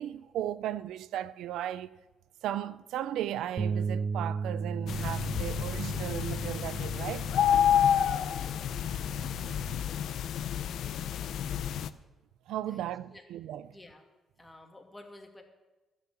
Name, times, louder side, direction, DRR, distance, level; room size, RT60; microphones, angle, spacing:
voice 1, 0.0-2.0 2.4-7.3 12.5-13.7, right 11 dB, 85° right, 0.4 m, -36 dB
Bass guitar, 3.6-9.8, right 5 dB, 40° right, 0.7 m, -36 dB
sound 1, 4.9-11.9, left 9 dB, 75° left, 0.6 m, -29 dB
voice 2, 13.7-14.1 14.4-15.4, left 1 dB, 15° left, 2.3 m, -51 dB
12.0 x 8.6 x 8.4 m
cardioid pair, 90°, 0 cm